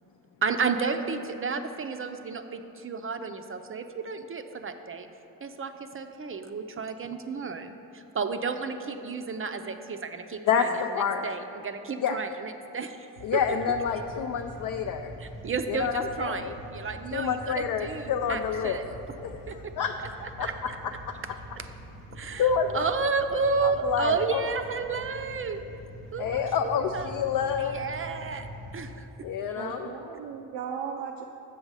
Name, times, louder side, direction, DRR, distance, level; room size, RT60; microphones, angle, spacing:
voice 1, 0.4-5.1 5.4-13.1 13.3-13.6 15.2-18.8 19.5-19.6 20.2-20.5 21.6-21.7 22.1-25.6 26.1-27.1 27.6-28.5 28.7-29.1, right 4 dB, 30° right, 7 dB, 0.5 m, -32 dB
voice 2, 10.5-11.3 12.0-12.2 13.2-15.1 15.7-16.5 17.1-18.8 19.2-19.4 19.8-19.9 20.4-20.5 22.4-22.8 23.6-24.4 26.2-27.8 29.2-29.9, left 7 dB, 50° left, 5 dB, 0.5 m, -28 dB
sound 1, 13.2-29.0, equal, 85° left, 1.0 m, -44 dB
voice 3, 29.5-31.3, right 7 dB, 80° right, 2 dB, 0.5 m, -36 dB
7.2 x 5.3 x 4.8 m, 2.9 s
supercardioid pair, 45°, 42 cm